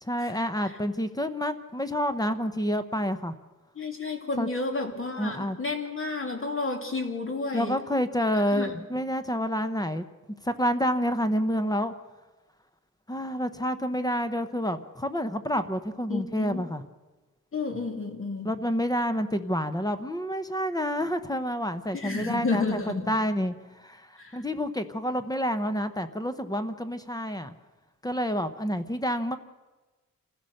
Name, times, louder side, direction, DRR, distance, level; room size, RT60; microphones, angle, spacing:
voice 1, 0.0-3.3 4.4-4.5 5.2-5.6 7.5-10.1 10.4-11.9 13.1-16.8 18.4-27.5 28.0-29.4, equal, 10° left, 9 dB, 0.7 m, -28 dB
voice 2, 3.8-7.8 8.5-8.8 16.1-16.6 17.5-18.5 21.9-23.1 24.2-24.4, left 3 dB, 40° left, 3 dB, 2.6 m, -31 dB
26.5 x 15.5 x 6.5 m, 1.2 s
wide cardioid pair, 175°, 31 cm